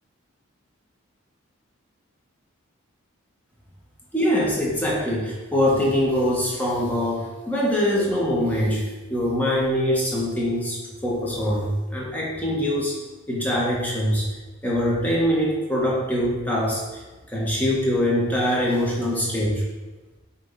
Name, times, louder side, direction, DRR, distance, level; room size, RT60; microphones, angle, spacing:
voice 1, 4.1-8.8 9.1-10.8 11.0-12.9 13.3-14.3 14.6-17.0 17.3-19.6, equal, 10° left, -5 dB, 1.6 m, -23 dB
7.5 x 3.7 x 5.7 m, 1.2 s
head